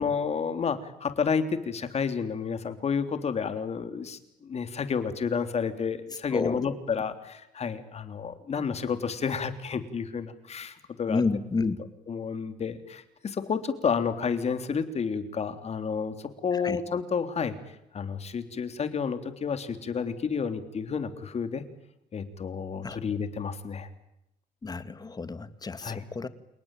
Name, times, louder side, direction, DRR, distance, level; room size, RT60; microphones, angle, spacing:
voice 1, 0.0-11.2 11.6-11.7 12.1-17.6 17.9-21.6 22.1-23.9 25.8-26.0, left 6 dB, 40° left, 9 dB, 3.5 m, -30 dB
voice 2, 6.3-6.7 11.1-11.8 16.5-16.8 22.8-23.0 24.6-26.3, left 4 dB, 25° left, 12 dB, 2.2 m, -30 dB
29.0 x 19.0 x 9.2 m, 0.84 s
cardioid pair, 110°, 17 cm